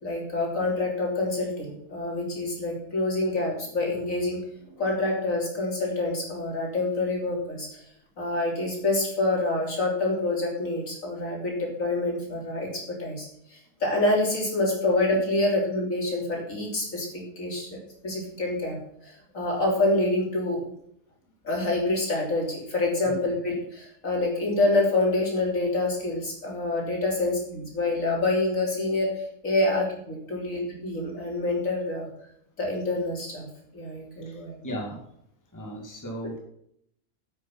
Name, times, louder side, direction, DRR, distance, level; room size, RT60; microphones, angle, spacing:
voice 1, 0.0-7.8 8.2-12.7 13.0-18.8 19.0-20.6 21.4-32.1 32.6-34.6, left 2 dB, 55° left, -1 dB, 3.8 m, -27 dB
voice 2, 34.6-35.0 35.5-36.4, equal, 10° left, 0 dB, 2.0 m, -35 dB
9.9 x 8.4 x 5.8 m, 0.71 s
omnidirectional pair, 1.6 m